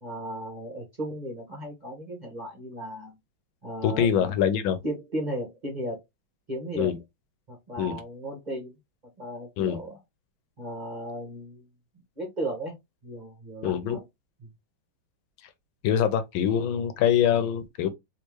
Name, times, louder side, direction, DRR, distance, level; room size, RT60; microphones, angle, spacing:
voice 1, 0.0-3.2 3.6-4.3 4.8-6.0 6.5-6.9 7.5-8.8 9.2-10.0 10.6-11.6 12.2-12.7 13.0-14.0 14.4-14.5, right 1 dB, 30° right, 0.8 m, -35 dB
voice 2, 3.8-4.8 6.8-7.0 7.8-8.0 9.6-9.8 13.6-14.0 15.8-17.9, left 9 dB, 90° left, 1.5 m, -24 dB
3.5 x 3.0 x 3.0 m
omnidirectional pair, 2.2 m